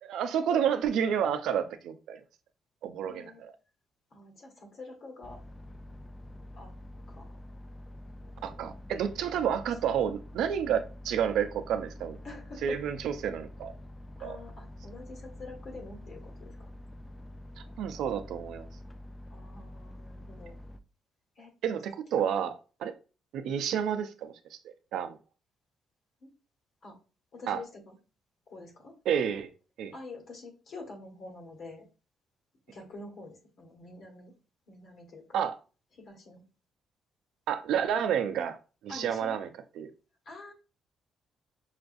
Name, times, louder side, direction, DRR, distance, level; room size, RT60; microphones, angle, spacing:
voice 1, 0.0-2.2 2.8-3.5 8.4-12.2 12.6-13.7 14.2-14.4 17.8-18.7 21.6-22.9 23.3-25.2 27.5-27.6 29.1-29.5 29.8-29.9 35.3-35.6 37.5-38.6 38.8-39.5 39.7-39.9, right 8 dB, 80° right, 0.5 m, -30 dB
voice 2, 3.1-3.4 4.1-5.4 6.6-6.7 7.1-7.4 8.4-8.6 9.3-9.4 12.2-12.8 14.2-16.7 19.3-20.5 21.3-21.5 22.1-22.3 26.2-26.3 26.8-27.0 27.3-27.9 28.5-29.0 29.9-31.9 32.7-34.3 34.7-35.2 35.9-36.4 38.9-39.4 40.2-40.5, left 3 dB, 65° left, 1.6 m, -46 dB
sound 1, 5.2-20.8, left 1 dB, 20° left, 0.3 m, -47 dB
5.7 x 2.3 x 2.6 m
cardioid pair, 90°, 0 cm